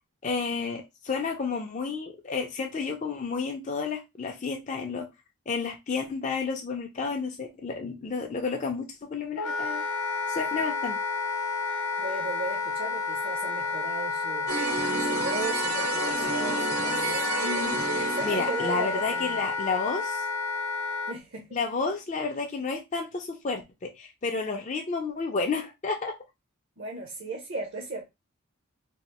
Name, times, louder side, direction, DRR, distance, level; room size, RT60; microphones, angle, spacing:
voice 1, 0.2-5.1 5.5-9.8 10.3-11.0 17.4-20.2 21.5-26.1, left 4 dB, 35° left, 0.4 m, -31 dB
Wind instrument woodwind instrument, 9.4-21.2, left 4 dB, 85° left, 0.6 m, -30 dB
voice 2, 12.0-14.6 15.0-17.5 18.0-19.5 21.1-21.6 26.8-28.1, right 3 dB, 50° right, 0.6 m, -36 dB
sound 1, 14.5-19.3, right 3 dB, 90° right, 1.0 m, -31 dB
3.1 x 2.4 x 2.8 m
head